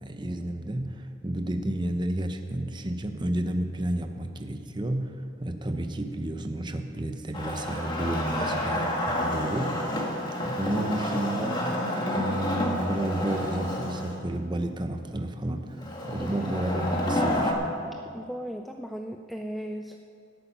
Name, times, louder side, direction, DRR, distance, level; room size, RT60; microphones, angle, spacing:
voice 1, 0.0-5.1 5.4-10.0 10.4-11.8 12.1-17.6, right 1 dB, 20° right, 6 dB, 0.7 m, -31 dB
Wood, 7.3-14.1 15.8-17.5, left 1 dB, 20° left, 1.6 m, -29 dB
voice 2, 8.4-8.8 16.2-16.6 18.1-20.0, equal, ahead, 3 dB, 0.3 m, -37 dB
18.0 x 8.7 x 5.6 m, 2.4 s
head